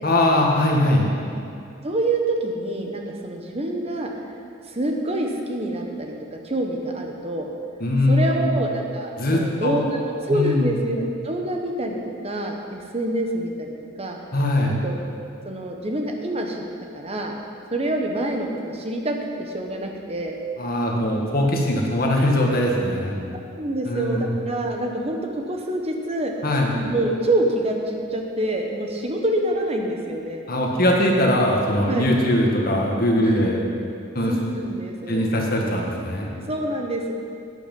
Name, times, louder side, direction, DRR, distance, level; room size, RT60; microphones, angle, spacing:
voice 1, 0.0-1.1 7.8-8.5 9.2-9.8 10.3-10.7 14.3-14.8 20.6-23.2 23.8-24.3 26.4-26.7 30.5-33.6 34.1-34.3 35.1-36.3, left 1 dB, 45° left, -1 dB, 1.7 m, -21 dB
voice 2, 1.8-4.1 4.7-6.1 6.4-7.5 8.1-12.0 12.2-14.2 14.8-15.0 15.4-16.6 16.9-17.3 17.7-18.5 18.7-20.4 23.6-26.3 26.8-30.4 31.9-32.1 33.2-33.4 34.3-35.2 36.5-37.1, right 1 dB, 30° right, 2 dB, 1.1 m, -26 dB
11.5 x 9.7 x 5.4 m, 2.5 s
head